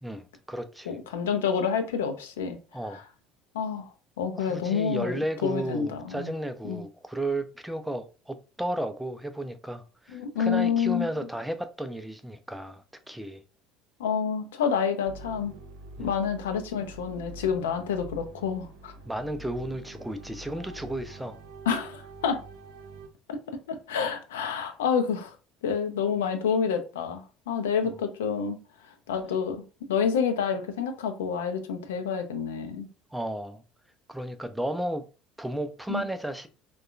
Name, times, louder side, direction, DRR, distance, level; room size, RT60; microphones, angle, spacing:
voice 1, 0.0-1.0 2.7-3.0 4.4-13.4 16.0-16.1 19.0-21.4 33.1-33.6 34.1-35.1 35.4-36.5, right 1 dB, 5° right, 0.4 m, -33 dB
voice 2, 0.9-2.6 2.9-3.0 3.5-3.9 4.2-6.3 6.7-6.8 10.1-11.1 14.0-15.5 16.0-18.9 21.7-22.4 23.3-25.3 25.6-28.6 29.1-29.6 29.9-32.9 35.9-36.0, left 6 dB, 70° left, 0.4 m, -28 dB
sound 1, 15.0-23.1, right 2 dB, 65° right, 0.6 m, -46 dB
3.4 x 2.2 x 2.4 m
figure-of-eight pair, 60°, 0 cm